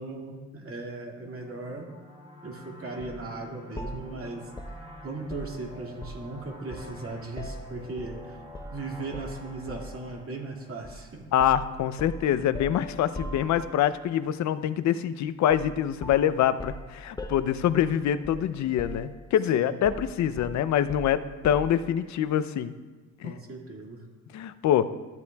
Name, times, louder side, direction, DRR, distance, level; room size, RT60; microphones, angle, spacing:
voice 1, 0.0-1.9 2.4-4.5 5.0-8.4 8.7-11.3 19.5-19.7 23.2-24.0, right 3 dB, 45° right, 0 dB, 2.2 m, -37 dB
sound 1, 1.1-11.5, equal, 20° right, 1.4 m, -48 dB
sound 2, 3.0-3.2 3.8-6.4 6.7-8.2 8.5-8.8 9.1-10.0 10.8-11.0 11.4-14.0 15.5-15.8 16.0-18.5 18.8-19.4 19.8-21.8, equal, 15° left, 0.6 m, -41 dB
voice 2, 11.3-22.7 23.2-23.3 24.3-24.9, left 10 dB, 65° left, 13 dB, 0.6 m, -25 dB
13.5 x 8.2 x 2.3 m, 1.3 s
cardioid pair, 90°, 30 cm